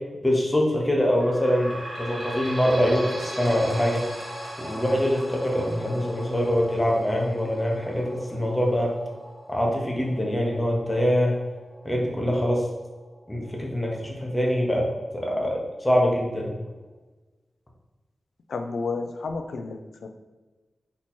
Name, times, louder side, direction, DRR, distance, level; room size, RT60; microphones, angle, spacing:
voice 1, 0.2-1.7 2.0-4.0 4.6-8.9 9.5-11.4 11.8-12.7 13.3-14.9 15.1-16.5, equal, 15° left, -1 dB, 0.8 m, -24 dB
sound 1, 1.0-14.1 14.7-14.8 15.1-15.2 16.0-16.1, right 1 dB, 20° right, 1.4 m, -39 dB
voice 2, 18.5-20.1, left 4 dB, 80° left, 6 dB, 0.4 m, -31 dB
4.1 x 3.0 x 4.3 m, 1.2 s
wide cardioid pair, 135°, 0 cm